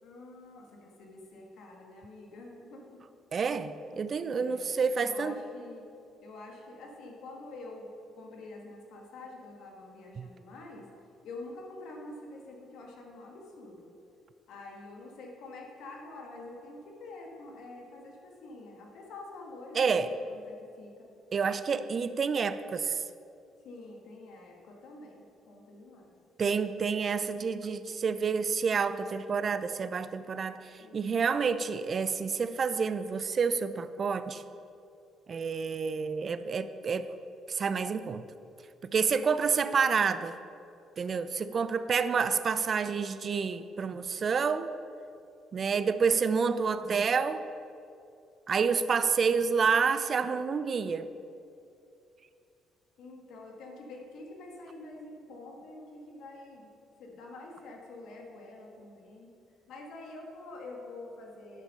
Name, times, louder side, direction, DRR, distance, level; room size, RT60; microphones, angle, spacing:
voice 1, 0.0-3.0 4.3-5.9 6.2-7.9 8.1-10.8 11.2-13.9 14.5-21.1 23.6-26.1 30.8-31.3 38.9-39.3 53.0-56.7 57.0-59.3 59.6-61.6, left 2 dB, 75° left, 0 dB, 1.7 m, -47 dB
voice 2, 3.3-5.3 10.2-10.3 19.7-20.1 21.3-23.0 26.4-30.6 30.9-34.4 35.3-37.1 37.5-38.2 38.8-40.4 41.0-44.7 45.5-47.4 48.5-51.1, right 5 dB, 50° right, 12 dB, 0.4 m, -28 dB
10.0 x 6.2 x 5.4 m, 2.6 s
supercardioid pair, 70°, 0 cm